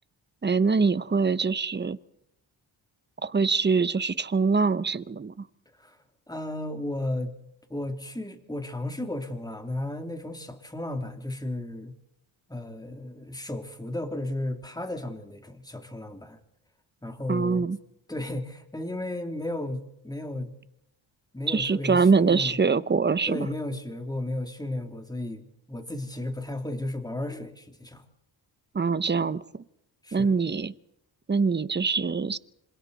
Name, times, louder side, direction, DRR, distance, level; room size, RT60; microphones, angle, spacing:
voice 1, 0.4-2.0 3.2-5.3 17.3-17.8 21.5-23.5 28.7-29.4 30.1-30.7 31.3-32.4, right 4 dB, 20° right, 16 dB, 0.8 m, -24 dB
voice 2, 6.3-7.3 7.7-11.9 12.5-16.4 17.0-17.6 18.1-20.5 21.3-22.6 23.3-28.0 30.0-30.4, left 1 dB, 10° left, 5 dB, 2.9 m, -34 dB
27.0 x 26.5 x 4.1 m, 0.79 s
cardioid pair, 100°, 47 cm